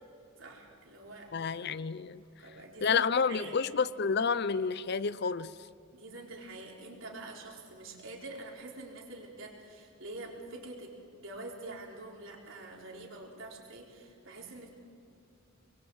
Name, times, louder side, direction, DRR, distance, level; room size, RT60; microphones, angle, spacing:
voice 1, 0.4-1.3 2.2-3.6 5.9-14.7, right 2 dB, 70° right, 4.0 m, -46 dB
voice 2, 1.3-2.2 2.8-5.5, left 5 dB, 50° left, 0.5 m, -29 dB
26.0 x 22.0 x 4.8 m
head